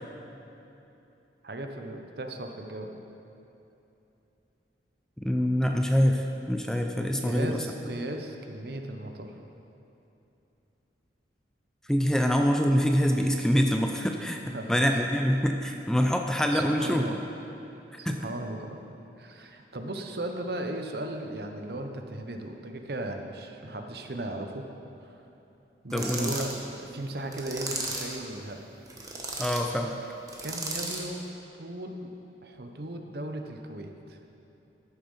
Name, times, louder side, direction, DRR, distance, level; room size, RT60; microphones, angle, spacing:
voice 1, 1.4-2.9 7.1-9.4 14.5-14.8 16.5-17.2 18.0-18.9 19.2-24.6 25.0-25.2 25.8-28.8 30.4-31.3 31.6-32.1 32.4-34.2, right 1 dB, 60° right, 4 dB, 0.9 m, -36 dB
voice 2, 5.2-7.6 11.9-17.1 18.0-18.3 25.9-26.3 29.4-30.0, equal, 5° left, 3 dB, 0.5 m, -25 dB
sound 1, 25.9-26.6 27.3-28.2 28.9-29.6 30.3-31.1, right 3 dB, 20° right, 1.2 m, -35 dB
14.0 x 7.2 x 5.6 m, 2.9 s
head